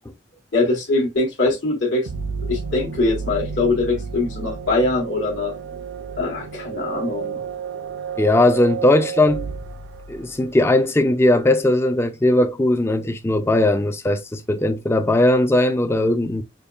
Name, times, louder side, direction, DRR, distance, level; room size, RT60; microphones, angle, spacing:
voice 1, 0.5-2.1 2.5-5.5 6.2-7.4, left 2 dB, 65° left, 1.1 m, -22 dB
sound 1, 2.1-10.7, right 6 dB, 65° right, 0.5 m, -31 dB
voice 2, 8.2-9.5 10.1-16.4, left 1 dB, 15° left, 0.3 m, -18 dB
5.1 x 2.3 x 2.3 m
head